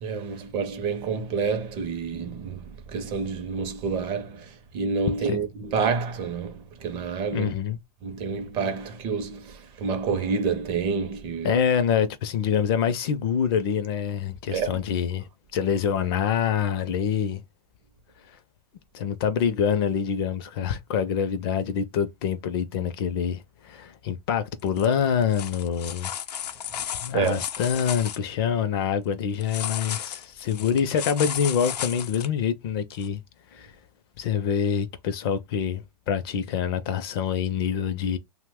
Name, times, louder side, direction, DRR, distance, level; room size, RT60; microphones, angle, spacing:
voice 1, 0.0-2.6 2.9-4.5 4.7-7.5 8.0-11.5 14.5-14.8 27.1-27.4, right 5 dB, 25° right, 0.5 m, -28 dB
voice 2, 7.3-7.8 11.4-17.4 18.3-18.4 18.9-26.1 27.0-33.2 33.5-33.7 34.2-38.2, left 7 dB, 40° left, 0.4 m, -26 dB
sound 1, 24.7-24.9 25.2-28.2 29.4-32.3 33.0-33.1, left 9 dB, 90° left, 0.5 m, -34 dB
2.8 x 2.1 x 3.4 m
hypercardioid pair, 150°, 20 cm